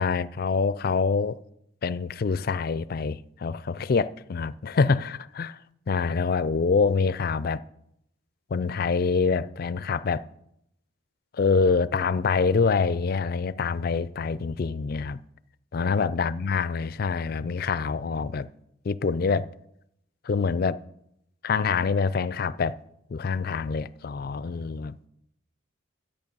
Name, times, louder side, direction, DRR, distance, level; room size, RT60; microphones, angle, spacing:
voice 1, 0.0-1.4 1.8-5.6 5.9-7.6 8.5-10.3 11.3-15.2 15.7-18.5 18.8-19.5 20.2-20.8 21.4-22.8 23.1-25.0, left 5 dB, 45° left, 0.4 m, -25 dB
13.0 x 8.8 x 5.4 m
head